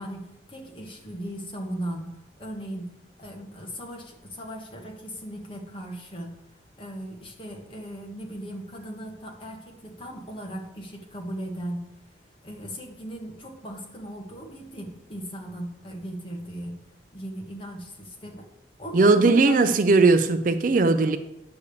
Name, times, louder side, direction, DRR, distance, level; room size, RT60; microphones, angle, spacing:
voice 1, 0.0-2.9 3.2-6.4 6.8-11.9 12.4-16.8 17.1-18.5 18.8-19.7, right 1 dB, 30° left, 1.3 m, -37 dB
voice 2, 18.9-21.2, right 3 dB, 45° right, 0.4 m, -18 dB
9.7 x 3.4 x 6.8 m
head